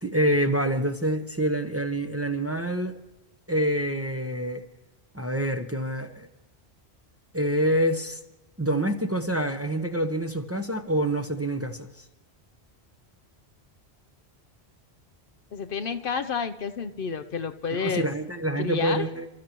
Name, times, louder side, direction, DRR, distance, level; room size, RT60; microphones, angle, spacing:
voice 1, 0.0-3.0 3.5-4.6 5.1-6.3 7.3-8.2 8.6-11.9 17.7-19.3, right 1 dB, 15° right, 0.9 m, -26 dB
voice 2, 15.5-18.1 18.6-19.1, left 5 dB, 60° left, 0.9 m, -30 dB
30.0 x 13.5 x 3.0 m
omnidirectional pair, 1.1 m